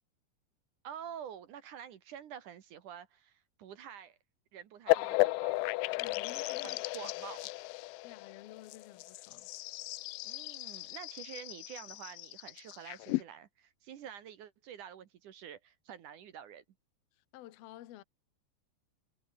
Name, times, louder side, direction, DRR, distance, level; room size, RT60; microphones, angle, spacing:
voice 1, 0.8-4.2 4.5-5.6 6.6-7.5 10.2-16.6, right 9 dB, 60° right, 2.2 m, -48 dB
sound 1, 4.9-13.2, left 22 dB, 85° left, 3.1 m, -35 dB
voice 2, 6.0-7.1 8.0-9.5 17.1-18.0, left 14 dB, 65° left, 3.0 m, -52 dB
omnidirectional pair, 5.3 m